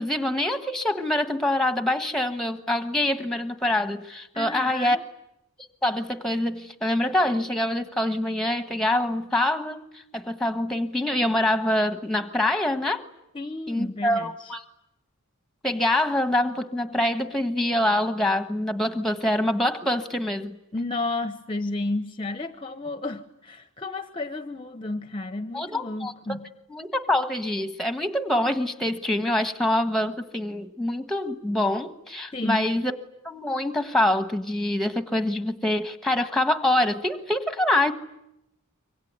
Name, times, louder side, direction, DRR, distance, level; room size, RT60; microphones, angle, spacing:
voice 1, 0.0-5.0 5.8-13.0 13.7-14.6 15.6-20.6 25.5-26.1 26.7-32.9 33.2-37.9, left 1 dB, ahead, 10 dB, 1.4 m, -25 dB
voice 2, 4.3-5.0 13.3-14.5 20.7-26.5 32.3-32.7, left 2 dB, 25° left, 10 dB, 1.0 m, -32 dB
26.0 x 24.0 x 9.6 m, 0.84 s
head